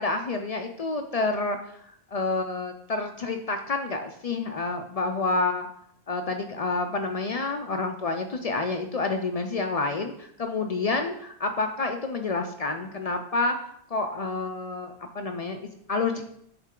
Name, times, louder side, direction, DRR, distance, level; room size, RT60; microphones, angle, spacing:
voice 1, 0.0-5.7 6.1-16.2, left 3 dB, 50° left, 5 dB, 0.4 m, -29 dB
8.1 x 3.2 x 3.7 m, 0.68 s
omnidirectional pair, 1.1 m